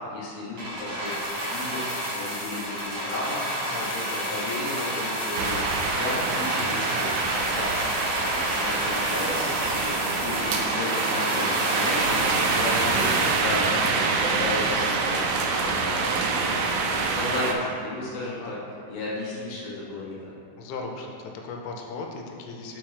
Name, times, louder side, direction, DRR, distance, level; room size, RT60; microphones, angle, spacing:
voice 1, 0.1-7.7 8.2-9.9 10.2-14.0 14.3-15.3 15.6-16.5 17.1-18.6 18.9-20.3, left 2 dB, 60° left, -7 dB, 1.8 m, -34 dB
sound 1, 0.6-14.2 15.0-15.1, equal, 45° right, 1.8 m, -30 dB
voice 2, 3.6-4.0 12.0-12.3 18.2-18.6 20.6-22.8, left 3 dB, 85° left, 1 dB, 2.6 m, -38 dB
sound 2, 5.4-17.5, right 4 dB, 80° right, 2.3 m, -26 dB
5.9 x 4.4 x 4.9 m, 2.4 s
omnidirectional pair, 4.5 m